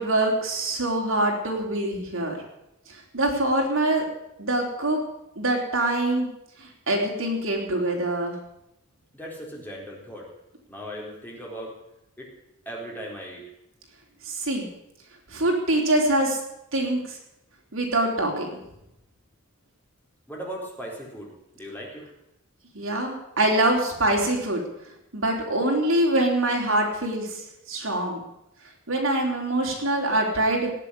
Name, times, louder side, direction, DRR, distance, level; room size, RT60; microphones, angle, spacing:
voice 1, 0.0-2.4 2.9-4.1 4.4-5.0 5.4-6.3 6.6-8.3 14.2-14.7 15.3-16.4 16.7-17.2 17.7-18.6 22.7-24.6 25.1-28.2 28.9-30.7, right 1 dB, 70° right, 0 dB, 3.9 m, -24 dB
voice 2, 9.1-10.3 10.7-11.7 12.2-12.3 12.7-13.4 20.3-22.0, equal, 10° left, -3 dB, 4.2 m, -38 dB
18.5 x 7.5 x 9.8 m, 0.85 s
head